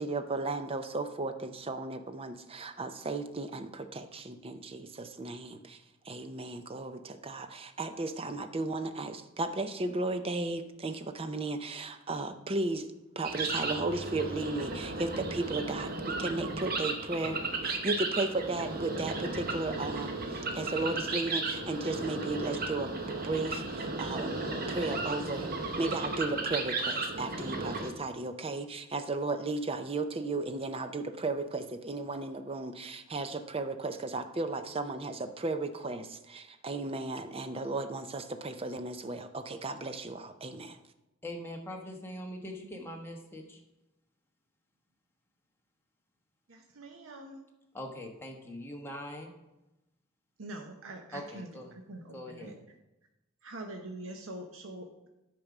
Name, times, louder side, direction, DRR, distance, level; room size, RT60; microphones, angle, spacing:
voice 1, 0.0-5.8 6.0-12.9 13.2-24.4 24.7-25.5 25.8-40.8, right 2 dB, 30° right, 9 dB, 0.5 m, -35 dB
sound 1, 13.2-27.9, right 3 dB, 45° right, 1.0 m, -35 dB
voice 2, 41.2-43.6 47.7-49.3 51.1-51.7 52.1-52.6, left 1 dB, 10° left, 1 dB, 1.2 m, -42 dB
voice 3, 46.8-47.4 50.4-51.5 51.9-52.0 52.3-52.5 53.4-55.1, right 1 dB, 80° right, 4 dB, 0.8 m, -43 dB
8.7 x 5.2 x 5.9 m, 0.98 s
head